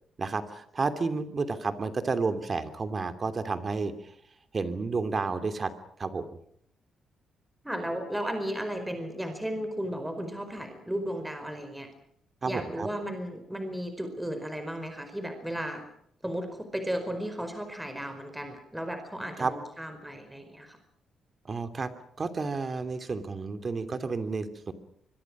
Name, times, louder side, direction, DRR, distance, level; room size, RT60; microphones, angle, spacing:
voice 1, 0.2-3.9 4.5-5.7 6.0-6.2 12.4-12.9 19.4-19.5 21.4-21.9 22.2-24.7, right 4 dB, 35° right, 10 dB, 2.9 m, -31 dB
voice 2, 7.6-11.9 12.4-15.8 16.2-20.8, equal, 5° right, 7 dB, 4.7 m, -34 dB
25.5 x 23.0 x 6.2 m, 0.70 s
cardioid pair, 105°, 0 cm